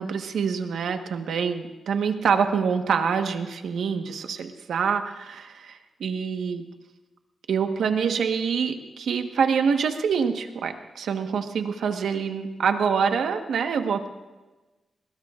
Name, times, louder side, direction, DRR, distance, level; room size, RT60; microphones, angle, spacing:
voice 1, 0.0-6.7 7.5-14.1, right 6 dB, 80° right, 6 dB, 1.3 m, -26 dB
21.0 x 20.5 x 2.5 m, 1.2 s
cardioid pair, 80°, 0 cm